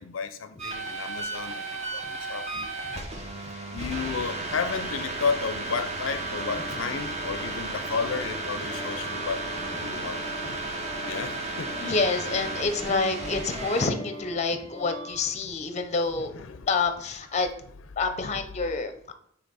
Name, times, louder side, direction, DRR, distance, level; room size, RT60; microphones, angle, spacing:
voice 1, 0.0-1.6 1.9-2.7 3.7-9.4 9.8-10.2 11.1-11.7 16.3-16.7, left 5 dB, 80° left, 10 dB, 0.5 m, -32 dB
sound 1, 0.6-13.9, right 3 dB, 35° right, 0.9 m, -34 dB
sound 2, 1.7-15.2, right 2 dB, 85° right, 1.3 m, -49 dB
voice 2, 2.9-3.3 10.5-10.7 11.8-17.5 18.0-19.1, left 4 dB, 35° left, 8 dB, 0.6 m, -28 dB
Organ, 5.8-15.2, left 2 dB, ahead, 0.3 m, -44 dB
8.0 x 3.0 x 3.9 m, 0.66 s
head